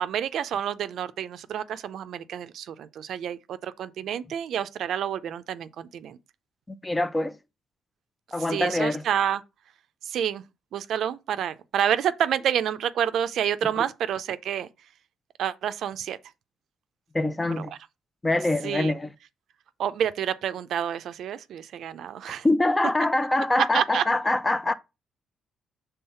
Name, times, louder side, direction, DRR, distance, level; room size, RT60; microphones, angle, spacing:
voice 1, 0.0-6.2 8.5-9.4 10.0-10.4 10.7-14.7 15.4-16.2 17.6-17.8 18.6-18.9 19.8-22.5 23.6-24.0, right 9 dB, 70° right, 0.5 m, -28 dB
voice 2, 6.7-7.4 8.3-9.0 17.1-17.7 18.2-19.1 22.4-24.7, left 2 dB, 15° left, 0.6 m, -24 dB
5.6 x 3.5 x 5.6 m
cardioid pair, 90°, 0 cm